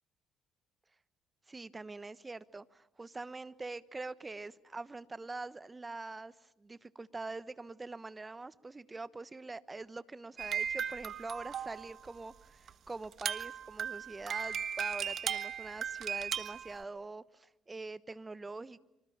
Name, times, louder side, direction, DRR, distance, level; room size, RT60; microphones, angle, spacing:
voice 1, 1.5-18.8, right 3 dB, 25° right, 1.2 m, -44 dB
sound 1, 10.4-12.1 12.7-12.8 13.0-16.8, right 8 dB, 55° right, 1.4 m, -37 dB
26.0 x 25.5 x 8.8 m
hypercardioid pair, 55°, 0 cm